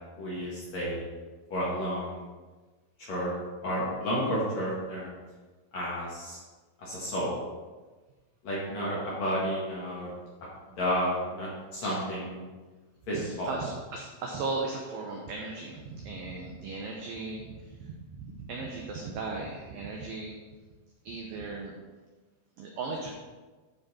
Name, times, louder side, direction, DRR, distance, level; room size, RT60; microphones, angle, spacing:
voice 1, 0.2-1.1 1.5-2.2 3.1-3.3 3.6-5.1 5.7-6.4 6.8-7.4 8.4-10.1 10.8-12.4 13.1-13.5, equal, 50° left, -6 dB, 2.2 m, -31 dB
voice 2, 13.1-20.4 21.0-21.7 22.6-23.1, right 3 dB, 85° right, 0 dB, 2.0 m, -37 dB
12.0 x 5.3 x 4.2 m, 1.3 s
omnidirectional pair, 5.3 m